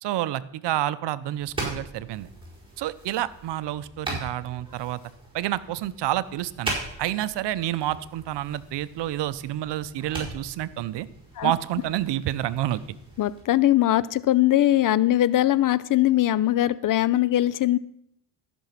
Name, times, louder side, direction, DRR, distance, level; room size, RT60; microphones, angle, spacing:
voice 1, 0.0-2.3 2.8-5.0 5.3-11.1 11.4-12.8, right 13 dB, 65° right, 17 dB, 0.7 m, -29 dB
sound 1, 1.3-13.4, right 2 dB, 10° right, 4.8 m, -39 dB
voice 2, 13.2-17.8, left 14 dB, 45° left, 19 dB, 0.5 m, -21 dB
14.0 x 6.2 x 5.7 m, 0.74 s
supercardioid pair, 80°, 46 cm